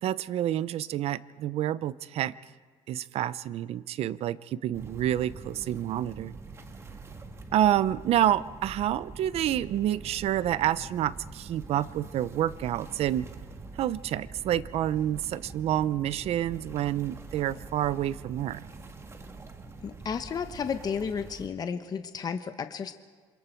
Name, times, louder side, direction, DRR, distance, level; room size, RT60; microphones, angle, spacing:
voice 1, 0.0-2.3 2.9-6.4 7.5-13.3 13.8-18.6, right 12 dB, 60° right, 16 dB, 0.7 m, -28 dB
sound 1, 4.7-21.5, right 3 dB, 25° right, 1.9 m, -45 dB
voice 2, 19.8-22.9, left 6 dB, 35° left, 8 dB, 1.0 m, -33 dB
27.5 x 27.0 x 4.5 m, 1.5 s
cardioid pair, 130°, 11 cm